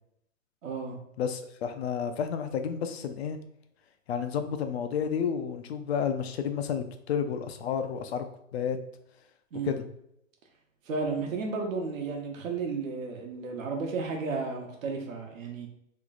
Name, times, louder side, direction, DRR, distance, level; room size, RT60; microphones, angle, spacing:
voice 1, 0.6-1.0 9.5-9.8 10.9-15.7, right 4 dB, 75° right, 2 dB, 1.0 m, -33 dB
voice 2, 1.2-3.4 4.1-8.2 8.5-8.8 9.6-9.8, left 7 dB, 50° left, 8 dB, 0.5 m, -31 dB
3.1 x 2.4 x 3.9 m, 0.77 s
hypercardioid pair, 145°, 41 cm